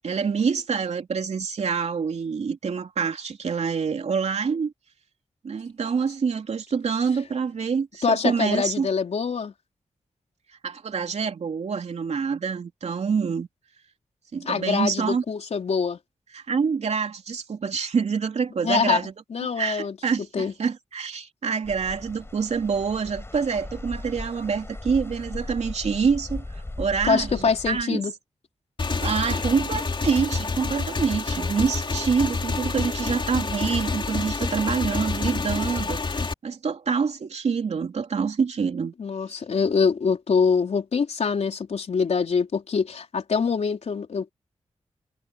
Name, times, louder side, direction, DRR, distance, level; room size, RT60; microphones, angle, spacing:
voice 1, 0.0-4.7 5.4-8.9 10.6-13.5 14.3-15.2 16.3-19.1 19.6-28.0 29.0-38.9, right 6 dB, 75° right, 3.0 m, -26 dB
voice 2, 8.0-9.5 14.4-16.0 18.6-19.0 19.3-20.0 20.3-20.5 27.1-28.1 39.0-44.3, left 5 dB, 75° left, 4.3 m, -24 dB
sound 1, 21.6-27.8, left 2 dB, 20° left, 6.7 m, -37 dB
Motorcycle / Engine, 28.8-36.3, left 4 dB, 45° left, 3.2 m, -28 dB
wide cardioid pair, 95°, 11 cm